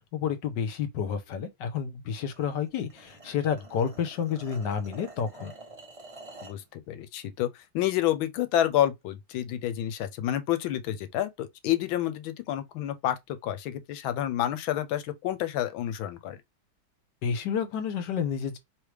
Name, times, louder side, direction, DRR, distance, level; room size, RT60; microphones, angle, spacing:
voice 1, 0.1-5.5 17.2-18.6, left 7 dB, 65° left, 1.3 m, -30 dB
sound 1, 2.3-6.6, right 2 dB, 30° right, 0.6 m, -48 dB
voice 2, 6.4-16.4, left 12 dB, 80° left, 1.4 m, -29 dB
4.8 x 3.4 x 3.2 m
omnidirectional pair, 2.2 m